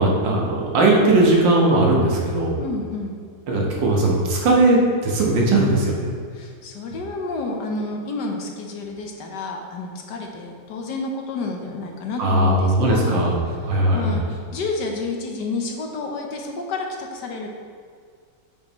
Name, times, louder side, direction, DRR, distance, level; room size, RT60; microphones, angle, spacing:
voice 1, 0.0-2.6 3.5-6.1 12.2-14.2, right 2 dB, 70° right, -2 dB, 2.0 m, -18 dB
voice 2, 2.6-3.1 6.3-13.2 13.5-13.6 13.9-17.5, left 3 dB, 70° left, 2 dB, 1.4 m, -30 dB
9.1 x 6.4 x 3.1 m, 2.2 s
omnidirectional pair, 2.0 m